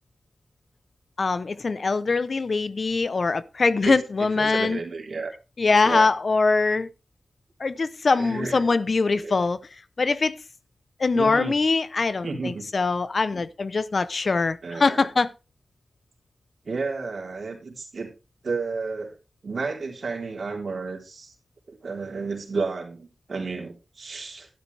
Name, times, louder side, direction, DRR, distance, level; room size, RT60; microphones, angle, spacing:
voice 1, 1.2-4.8 5.6-6.9 7.6-9.6 10.0-10.3 11.0-15.3, left 4 dB, 60° left, 0.8 m, -23 dB
voice 2, 3.8-5.3 5.8-6.1 8.1-8.8 9.2-9.3 11.1-11.6 12.2-12.7 13.3-13.4 14.6-15.1 16.7-18.1 18.4-19.2 19.4-21.3 21.7-24.5, right 4 dB, 65° right, 3.6 m, -32 dB
12.0 x 11.5 x 3.4 m
cardioid pair, 60°, 0 cm